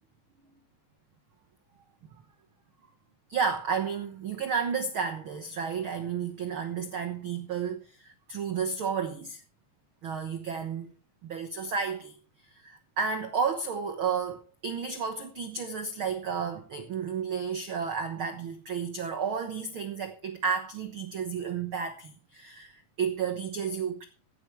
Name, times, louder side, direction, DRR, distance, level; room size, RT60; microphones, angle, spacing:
voice 1, 3.3-9.4 10.0-10.9 11.2-12.2 12.5-24.0, right 6 dB, 85° right, 1.1 m, -32 dB
15.5 x 10.5 x 4.6 m
omnidirectional pair, 4.1 m